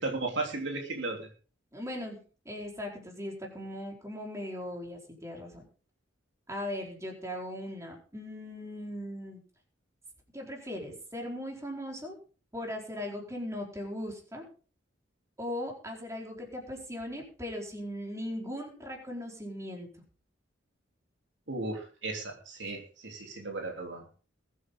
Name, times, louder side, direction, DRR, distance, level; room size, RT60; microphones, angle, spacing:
voice 1, 0.0-1.3 21.5-24.0, right 3 dB, 65° right, 1 dB, 3.2 m, -35 dB
voice 2, 1.7-2.2 2.4-5.6 6.5-9.4 10.3-12.2 12.5-14.4 15.4-19.9, left 1 dB, 15° right, 0 dB, 4.4 m, -38 dB
21.5 x 9.5 x 3.8 m, 0.39 s
head